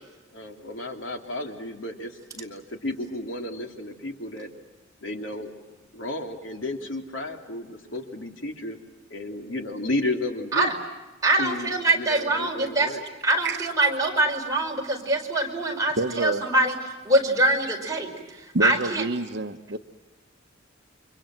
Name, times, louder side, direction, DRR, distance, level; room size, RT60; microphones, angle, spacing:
voice 1, 0.3-4.5 5.0-5.5 5.9-8.8 9.1-10.7 11.3-13.0, left 1 dB, 75° left, 3 dB, 3.1 m, -33 dB
voice 2, 11.2-12.9 13.2-16.7 17.0-18.1 18.6-19.0, right 2 dB, 20° right, -1 dB, 5.2 m, -23 dB
voice 3, 13.4-13.9 16.0-16.4 18.5-19.8, right 2 dB, 55° right, 7 dB, 1.1 m, -28 dB
29.5 x 25.5 x 7.7 m, 1.2 s
head